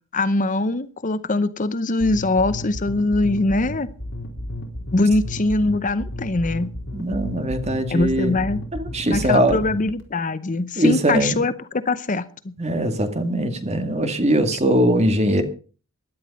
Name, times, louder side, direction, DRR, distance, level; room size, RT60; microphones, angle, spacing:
voice 1, 0.1-3.9 4.9-6.7 7.9-8.6 9.1-12.5, left 2 dB, 35° left, 14 dB, 0.7 m, -22 dB
sound 1, 2.0-10.0, left 1 dB, 60° left, 4.0 m, -32 dB
voice 2, 6.9-8.4 8.7-9.6 10.8-11.4 12.6-15.4, right 1 dB, 30° right, 7 dB, 2.1 m, -21 dB
16.5 x 11.5 x 5.4 m, 0.39 s
head